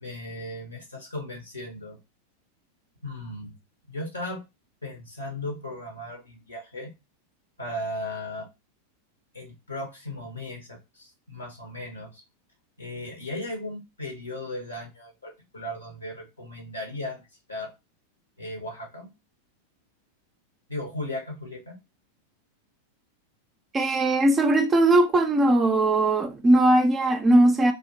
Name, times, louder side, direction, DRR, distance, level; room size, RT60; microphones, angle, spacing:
voice 1, 0.0-2.0 3.0-3.5 3.9-4.4 4.8-6.9 7.6-8.4 9.3-12.2 12.8-17.2 17.5-17.7 18.4-19.1 20.7-21.7, left 1 dB, 85° left, 1.2 m, -36 dB
voice 2, 23.7-27.7, right 1 dB, 20° right, 0.5 m, -19 dB
3.9 x 2.8 x 2.8 m
figure-of-eight pair, 90°, 0 cm